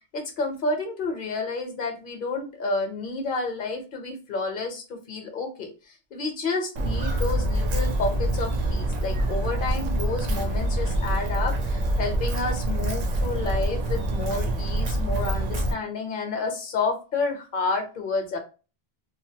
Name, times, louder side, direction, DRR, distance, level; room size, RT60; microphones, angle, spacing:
voice 1, 0.1-5.7 6.1-18.4, left 3 dB, 55° left, 5 dB, 0.9 m, -30 dB
Walk footsteps, 6.8-15.7, right 1 dB, 50° right, 0.5 m, -26 dB
2.8 x 2.4 x 2.7 m, 0.33 s
omnidirectional pair, 1.1 m